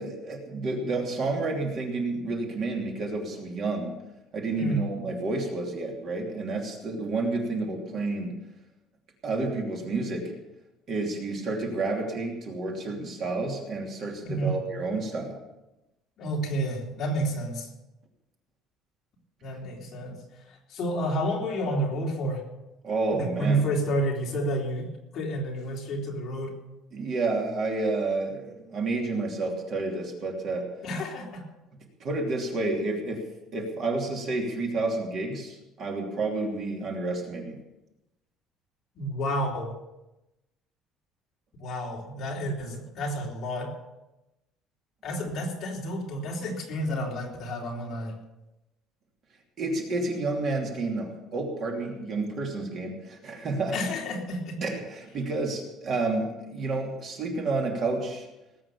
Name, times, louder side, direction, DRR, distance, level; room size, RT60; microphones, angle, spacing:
voice 1, 0.0-3.9 4.3-8.4 9.2-10.3 10.9-15.4 22.8-23.6 26.9-30.7 32.0-33.2 33.5-37.6 49.6-53.9 54.6-58.3, right 3 dB, 35° right, 1 dB, 2.9 m, -30 dB
voice 2, 14.2-14.6 16.2-17.7 19.4-20.2 20.7-22.4 23.2-26.5 30.8-31.4 39.0-39.8 41.6-43.8 45.0-48.2 53.7-54.6, right 1 dB, 35° left, -2 dB, 3.6 m, -30 dB
19.5 x 8.6 x 7.1 m, 0.96 s
cardioid pair, 175°, 0 cm